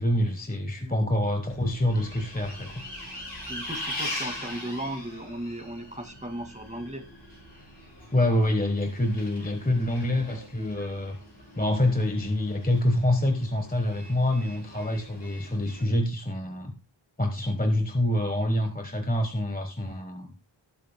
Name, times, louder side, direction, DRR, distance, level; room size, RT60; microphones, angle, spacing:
voice 1, 0.0-2.7 8.1-11.2 11.6-16.7 17.2-20.3, left 1 dB, 20° left, 6 dB, 1.2 m, -26 dB
voice 2, 0.8-1.1 3.5-7.1, right 1 dB, 15° right, 6 dB, 2.0 m, -36 dB
Bus, 1.4-15.8, left 1 dB, 55° left, 5.5 m, -41 dB
18.0 x 7.7 x 2.2 m, 0.31 s
wide cardioid pair, 45°, 48 cm